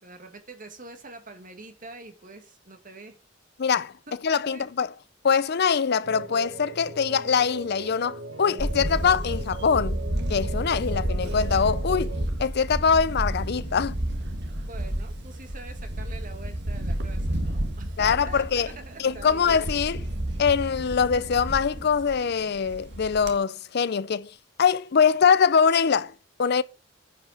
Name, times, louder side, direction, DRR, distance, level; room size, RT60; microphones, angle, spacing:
voice 1, 0.0-3.2 4.1-4.6 14.6-19.6, right 3 dB, 45° right, 2.0 m, -45 dB
voice 2, 3.6-3.9 4.2-4.9 5.2-10.0 10.3-12.1 12.4-14.0 18.0-18.7 19.0-20.0 20.4-24.3 24.6-26.1 26.4-26.6, left 6 dB, 55° left, 0.5 m, -23 dB
sound 1, 6.0-12.3, right 3 dB, 85° right, 1.3 m, -40 dB
Camera, 8.6-23.3, right 1 dB, 60° right, 1.7 m, -31 dB
10.0 x 5.6 x 5.7 m
head